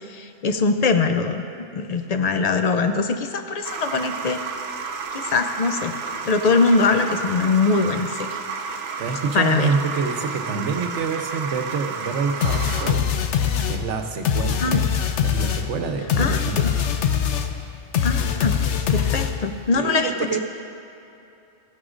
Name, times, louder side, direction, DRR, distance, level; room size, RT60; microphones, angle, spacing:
voice 1, 0.1-1.4 1.7-4.4 5.1-5.9 6.2-8.4 9.3-9.7 14.6-14.8 16.2-16.4 18.0-18.5 18.9-20.1, left 4 dB, 60° left, 7 dB, 0.4 m, -22 dB
sound 1, 3.6-12.9, right 5 dB, 65° right, 0.9 m, -31 dB
voice 2, 9.0-13.2 13.7-14.9 15.2-16.7 19.7-20.4, right 5 dB, 85° right, 5 dB, 1.1 m, -27 dB
sound 2, 12.4-19.6, left 8 dB, 80° left, 1.0 m, -23 dB
15.5 x 11.0 x 2.5 m, 2.8 s
omnidirectional pair, 1.2 m